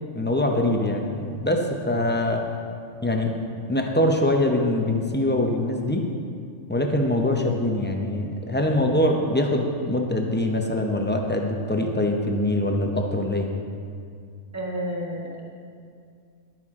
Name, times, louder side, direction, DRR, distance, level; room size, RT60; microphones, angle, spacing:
voice 1, 0.1-2.4 3.0-3.3 3.7-6.0 6.7-13.5, left 1 dB, 10° left, 2 dB, 0.6 m, -23 dB
voice 2, 14.5-15.4, equal, 15° right, -2 dB, 1.4 m, -30 dB
11.5 x 9.2 x 3.7 m, 2.3 s
omnidirectional pair, 1.4 m